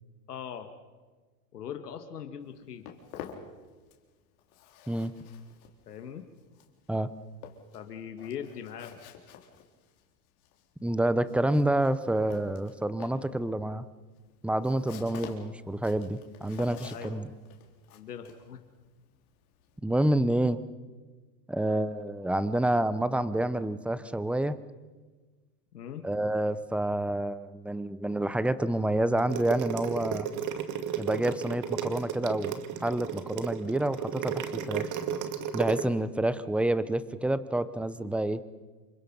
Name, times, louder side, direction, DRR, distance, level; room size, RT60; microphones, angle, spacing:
voice 1, 0.3-0.7 1.5-2.9 5.9-6.3 7.7-8.9 16.8-17.3 17.9-18.6 25.7-26.1, left 8 dB, 90° left, 6 dB, 2.2 m, -41 dB
Walk footsteps, 2.4-4.1 4.4-19.8, left 8 dB, 65° left, 4.2 m, -49 dB
voice 2, 10.8-13.8 14.4-17.3 19.8-20.6 21.5-24.6 26.0-30.3 31.0-34.9 35.5-38.4, right 1 dB, 5° right, 15 dB, 0.9 m, -28 dB
sound 1, 29.2-35.8, right 9 dB, 40° right, 2.3 m, -33 dB
28.0 x 25.0 x 5.6 m, 1.3 s
hypercardioid pair, 110°, 45 cm